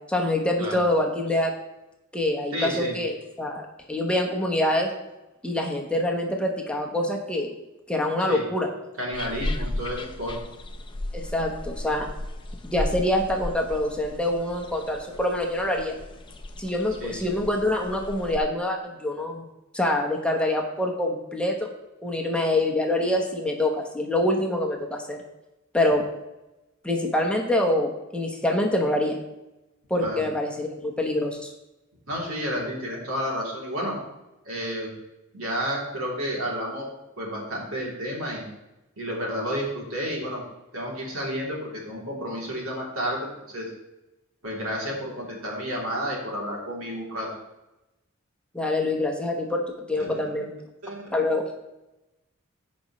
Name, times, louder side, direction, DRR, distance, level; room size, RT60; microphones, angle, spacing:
voice 1, 0.1-1.5 2.1-4.9 5.4-7.5 7.9-8.7 11.1-12.1 12.6-15.9 16.6-19.5 19.7-21.7 22.0-25.2 25.7-26.0 26.8-29.2 29.9-31.5 48.5-49.6 49.9-50.5 51.1-51.4, left 1 dB, 5° left, 1 dB, 1.0 m, -25 dB
voice 2, 2.5-2.9 8.3-8.4 9.0-10.4 17.0-17.4 30.0-30.2 32.1-34.0 34.4-34.9 35.3-36.9 37.2-38.5 39.0-40.4 40.7-43.7 44.4-47.4 50.0-50.2 50.8-51.0, equal, 80° right, -3 dB, 3.1 m, -31 dB
sound 1, 9.1-18.4, left 1 dB, 25° left, 0.6 m, -35 dB
15.5 x 5.2 x 3.1 m, 0.97 s
head